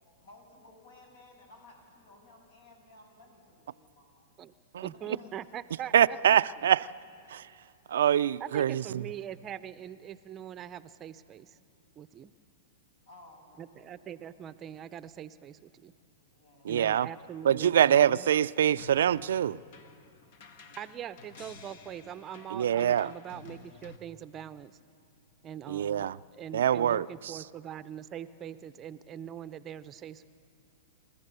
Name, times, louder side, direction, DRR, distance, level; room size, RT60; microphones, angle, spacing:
voice 1, 0.2-4.3 4.9-5.7 8.9-9.1 13.1-13.9 16.3-16.7 20.5-21.0, left 2 dB, 75° left, 6.9 m, -57 dB
voice 2, 4.8-6.4 8.4-11.6 12.0-12.3 13.6-15.9 16.7-18.3 20.8-24.8 25.4-26.1 26.3-30.3, right 10 dB, 25° right, 0.6 m, -42 dB
voice 3, 5.9-6.9 7.3-7.4 7.9-9.0 16.7-17.1 17.4-19.6 22.5-23.1 25.7-26.2 26.5-27.1, right 10 dB, 75° right, 0.4 m, -24 dB
sound 1, 18.8-24.0, left 4 dB, 55° left, 1.2 m, -52 dB
28.5 x 14.0 x 6.8 m
hypercardioid pair, 125°, 0 cm